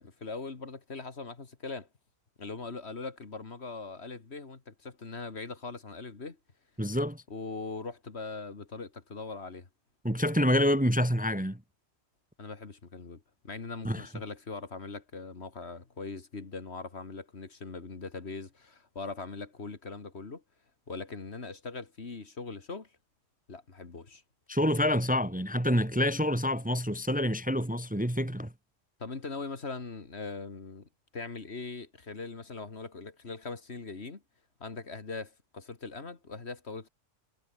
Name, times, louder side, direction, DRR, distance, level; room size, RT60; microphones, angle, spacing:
voice 1, 0.0-1.9 2.4-6.4 7.3-9.7 12.4-20.4 20.9-22.9 23.5-24.2 29.0-34.2 34.6-36.9, left 4 dB, 55° left, 2.3 m, -41 dB
voice 2, 6.8-7.2 10.0-11.6 13.8-14.1 24.5-28.5, equal, 5° right, 1.4 m, -27 dB
omnidirectional pair, 1.4 m